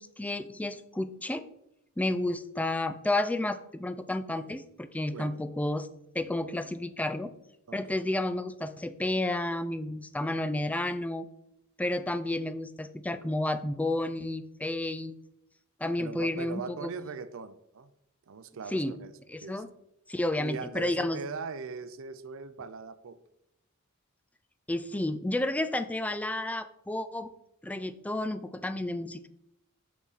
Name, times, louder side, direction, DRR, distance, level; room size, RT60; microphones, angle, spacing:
voice 1, 0.0-1.4 2.0-5.9 6.1-7.3 7.7-11.3 11.8-15.2 15.8-16.9 18.7-19.0 19.3-19.7 20.1-21.2 24.7-27.3 27.6-29.3, left 1 dB, 5° left, 10 dB, 0.3 m, -31 dB
voice 2, 5.0-5.4 7.7-8.1 16.0-17.9 18.3-19.1 19.4-19.6 20.4-23.2, right 5 dB, 65° right, 13 dB, 0.5 m, -40 dB
6.1 x 5.6 x 4.0 m, 0.80 s
head